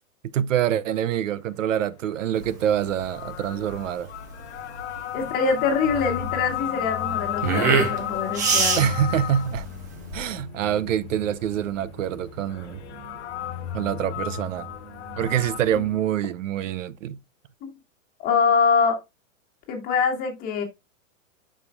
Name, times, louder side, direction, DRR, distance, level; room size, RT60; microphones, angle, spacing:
voice 1, 0.3-4.1 8.8-9.7 10.1-12.8 13.7-14.7 15.2-17.2, right 10 dB, 70° right, 0.7 m, -25 dB
sound 1, 2.4-10.4, right 5 dB, 15° right, 0.4 m, -27 dB
sound 2, 2.8-9.6 12.5-15.6, left 12 dB, 60° left, 0.8 m, -33 dB
voice 2, 5.1-8.9 17.6-17.7 18.2-19.0 19.7-20.6, left 5 dB, 20° left, 1.8 m, -24 dB
sound 3, 5.1-15.9, left 5 dB, 5° left, 3.1 m, -40 dB
10.5 x 5.1 x 2.2 m
hypercardioid pair, 160°, 39 cm